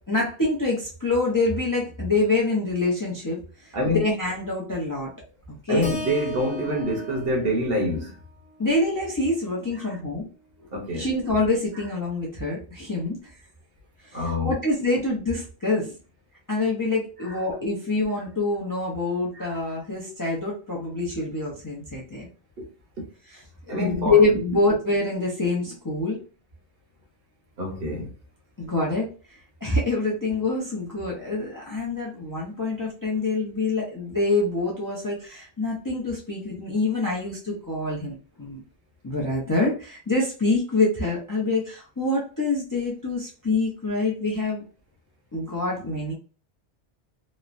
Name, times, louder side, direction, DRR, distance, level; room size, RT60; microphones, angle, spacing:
voice 1, 0.1-5.1 5.7-5.9 8.6-10.3 11.0-13.1 14.0-16.0 16.5-22.3 23.3-23.4 23.7-26.2 28.6-29.1 29.6-38.6 39.0-44.6 45.3-46.1, left 2 dB, 25° left, 0.5 m, -26 dB
voice 2, 3.7-4.0 5.7-8.2 9.8-9.9 10.7-11.1 14.1-14.5 17.2-17.4 19.3-19.5 23.7-24.2 27.6-28.1, equal, 60° right, 1.0 m, -26 dB
Keyboard (musical), 5.8-10.0, left 2 dB, 65° left, 0.9 m, -40 dB
3.0 x 2.0 x 2.4 m
omnidirectional pair, 1.2 m